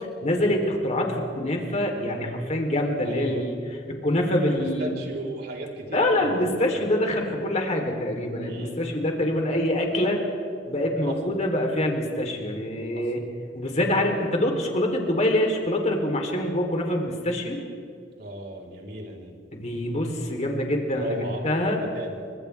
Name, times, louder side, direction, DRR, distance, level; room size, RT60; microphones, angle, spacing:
voice 1, 0.2-5.0 5.9-10.2 10.7-13.2 13.5-17.6 19.5-21.8, left 1 dB, 40° left, 2 dB, 3.5 m, -25 dB
voice 2, 3.1-3.4 4.5-6.3 8.4-8.8 18.2-19.3 21.0-21.4 21.9-22.1, right 1 dB, 60° right, -1 dB, 4.0 m, -35 dB
29.5 x 25.5 x 3.5 m, 2.5 s
head